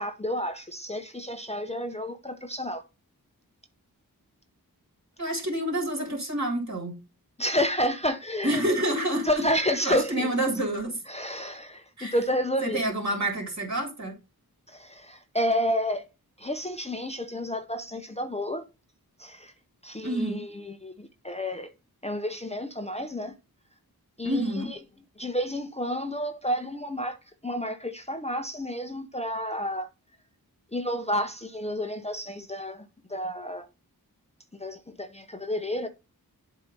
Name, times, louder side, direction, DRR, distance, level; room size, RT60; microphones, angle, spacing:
voice 1, 0.0-2.8 7.4-8.6 9.2-10.3 11.1-12.8 14.7-16.0 16.4-18.6 19.2-19.5 19.8-21.7 22.0-23.3 24.2-24.8 25.2-27.2 27.4-29.9 30.7-32.8 33.1-33.6 34.6-35.9, equal, 15° left, 0.7 m, -30 dB
voice 2, 5.2-7.0 8.4-9.3 9.8-11.0 12.0-12.1 12.6-14.1 20.0-20.4 24.2-24.7, right 1 dB, 50° right, 2.8 m, -28 dB
7.9 x 2.8 x 5.3 m
wide cardioid pair, 45°, 37 cm